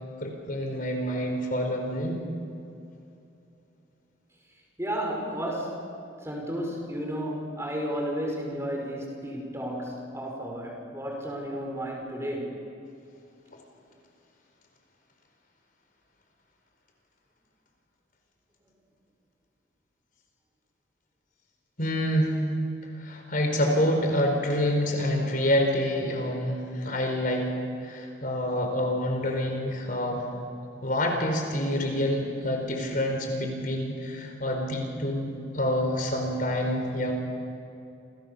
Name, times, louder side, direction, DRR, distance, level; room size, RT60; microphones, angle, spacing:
voice 1, 0.2-2.2 21.8-22.3 23.0-27.4 27.8-30.2 30.8-37.1, left 1 dB, 45° left, 3 dB, 4.7 m, -27 dB
voice 2, 4.8-5.8 6.2-12.6, equal, 15° right, 0 dB, 5.6 m, -32 dB
30.0 x 28.5 x 7.0 m, 2.6 s
head